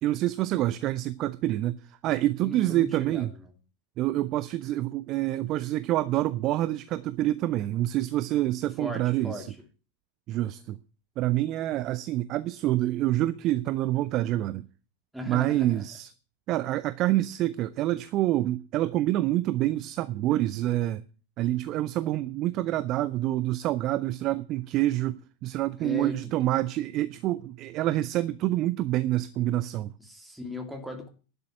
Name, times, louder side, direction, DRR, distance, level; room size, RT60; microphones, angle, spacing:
voice 1, 0.0-3.3 4.0-9.5 10.3-10.8 11.2-14.6 15.3-16.1 16.5-21.0 21.4-29.9, right 15 dB, 35° right, 0.6 m, -27 dB
voice 2, 2.4-3.5 8.8-9.4 15.1-15.8 25.8-26.2 30.0-31.1, left 1 dB, ahead, 2.9 m, -38 dB
11.5 x 6.8 x 9.2 m
figure-of-eight pair, 90°, 0 cm